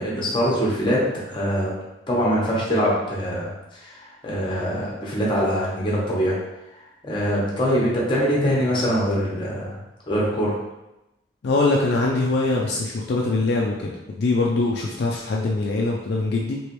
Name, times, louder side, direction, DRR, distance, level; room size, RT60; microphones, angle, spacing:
voice 1, 0.0-1.7 2.1-6.4 7.0-9.8 10.0-10.6, equal, 25° left, -5 dB, 1.0 m, -23 dB
voice 2, 11.4-13.9 14.2-16.6, left 2 dB, 60° left, -2 dB, 0.4 m, -22 dB
3.2 x 3.0 x 3.0 m, 0.94 s
head